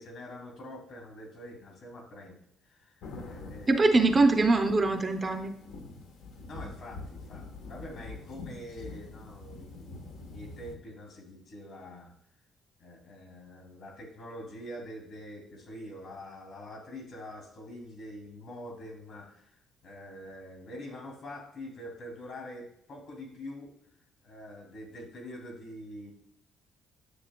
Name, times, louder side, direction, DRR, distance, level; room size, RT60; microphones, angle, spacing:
voice 1, 0.0-2.4 2.6-4.1 6.5-12.1 12.8-19.6 19.8-23.7 24.2-26.1, left 1 dB, 55° left, 1 dB, 2.4 m, -45 dB
sound 1, 3.0-10.7, left 3 dB, 75° left, 1.1 m, -45 dB
voice 2, 3.7-5.5, right 3 dB, 20° right, 5 dB, 0.5 m, -23 dB
9.8 x 7.2 x 2.2 m, 0.73 s
cardioid pair, 155°, 0 cm